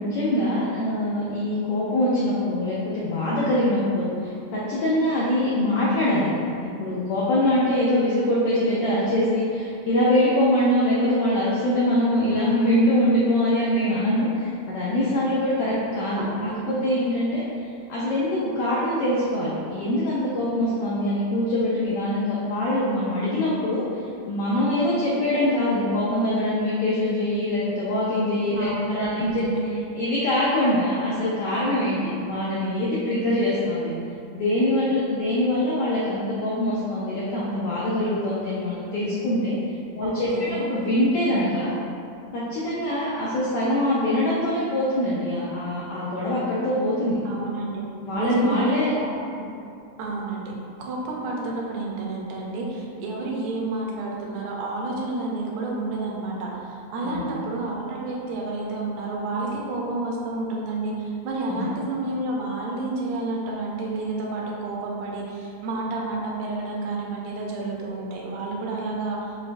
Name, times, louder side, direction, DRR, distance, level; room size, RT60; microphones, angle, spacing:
voice 1, 0.0-6.3 6.6-17.4 17.9-29.4 29.9-33.9 34.3-39.5 39.9-41.7 42.3-47.2 48.0-48.9 57.0-57.3 61.5-61.7, left 1 dB, 85° left, -7 dB, 1.3 m, -23 dB
voice 2, 16.2-16.6 28.5-29.0 29.4-29.6 40.0-40.7 47.3-47.8 48.2-49.4 50.0-50.5 50.8-69.2, right 2 dB, 80° right, -2 dB, 1.9 m, -30 dB
6.5 x 2.3 x 2.5 m, 2.4 s
omnidirectional pair, 3.3 m